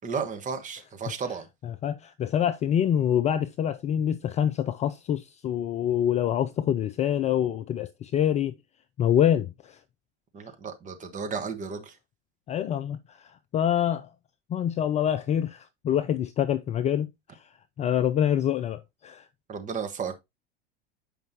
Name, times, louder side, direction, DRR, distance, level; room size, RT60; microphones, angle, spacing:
voice 1, 0.0-1.5 10.3-11.9 19.5-20.2, right 5 dB, 25° right, 1.4 m, -33 dB
voice 2, 1.6-8.5 9.0-9.8 12.5-13.2 13.5-14.1 14.5-17.1 17.8-19.3, left 10 dB, 20° left, 0.4 m, -26 dB
7.9 x 5.3 x 2.8 m
figure-of-eight pair, 85°, 31 cm